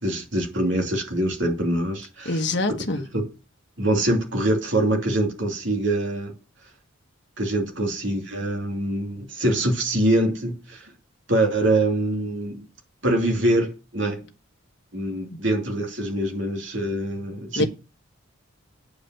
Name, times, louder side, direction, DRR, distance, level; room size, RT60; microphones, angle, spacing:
voice 1, 0.0-2.4 3.1-3.3 3.8-6.3 7.4-10.9 11.3-12.7 13.0-14.3 14.9-17.7, right 1 dB, 65° right, 2.7 m, -24 dB
voice 2, 2.2-3.0 15.3-15.4 17.6-17.7, left 2 dB, 55° left, 1.2 m, -24 dB
9.0 x 5.1 x 7.6 m
head